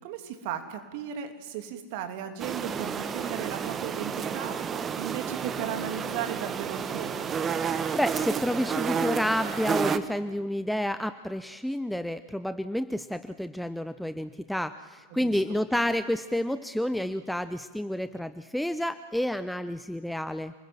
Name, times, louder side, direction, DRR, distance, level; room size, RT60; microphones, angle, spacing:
voice 1, 0.0-7.3 15.2-15.3, right 9 dB, 45° right, 6 dB, 2.9 m, -36 dB
sound 1, 2.4-10.0, right 7 dB, 25° right, 1.2 m, -31 dB
voice 2, 7.6-20.5, left 1 dB, ahead, 12 dB, 0.7 m, -30 dB
28.0 x 20.5 x 7.8 m, 1.3 s
figure-of-eight pair, 90°, 0 cm